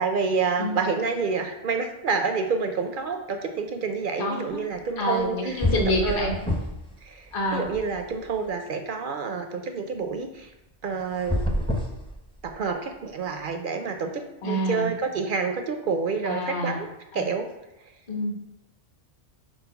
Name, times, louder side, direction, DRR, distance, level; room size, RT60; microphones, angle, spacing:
voice 1, 0.0-5.6 5.9-6.4 7.0-10.5 10.8-11.4 12.4-16.9 17.1-17.5, right 5 dB, 60° right, 5 dB, 0.6 m, -28 dB
voice 2, 4.2-4.7 5.0-6.3 7.3-7.6 14.4-14.9 16.2-16.8 17.1-17.3 18.1-18.3, left 1 dB, 50° left, -1 dB, 1.2 m, -27 dB
sound 1, 5.2-5.3 5.6-6.9 7.3-8.4 11.1-12.7, left 1 dB, 5° left, 0.5 m, -28 dB
4.3 x 4.1 x 5.6 m, 0.92 s
omnidirectional pair, 1.2 m